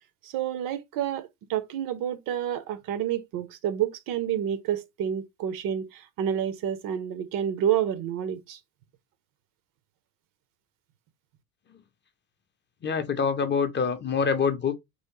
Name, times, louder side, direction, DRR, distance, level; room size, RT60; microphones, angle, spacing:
voice 1, 0.2-8.6, right 10 dB, 50° right, 0.6 m, -29 dB
voice 2, 12.8-14.8, left 6 dB, 25° left, 0.6 m, -25 dB
3.0 x 2.8 x 2.8 m
hypercardioid pair, 65°, 45 cm